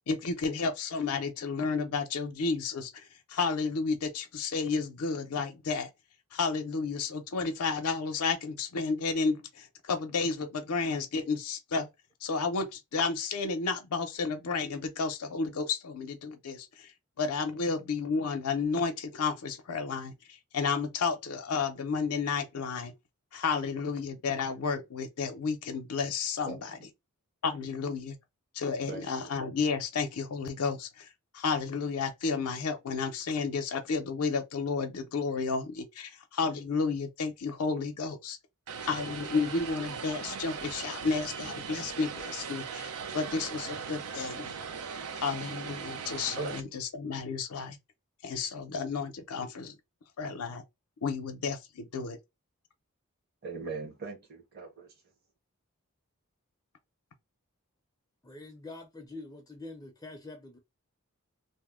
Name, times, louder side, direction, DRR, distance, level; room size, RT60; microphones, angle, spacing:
voice 1, 0.1-5.9 6.3-11.9 12.2-16.9 17.2-22.9 23.3-26.8 27.4-28.2 28.5-38.4 38.8-44.7 45.1-47.8 48.2-49.8 50.2-50.6 51.0-52.2, left 4 dB, 85° left, 0.5 m, -32 dB
voice 2, 28.9-29.3 46.4-46.5 53.4-54.9, right 5 dB, 45° right, 0.9 m, -40 dB
Vehicle, 38.7-46.6, right 6 dB, 85° right, 0.5 m, -39 dB
voice 3, 58.2-60.6, left 2 dB, 15° left, 0.4 m, -45 dB
2.7 x 2.0 x 3.5 m
head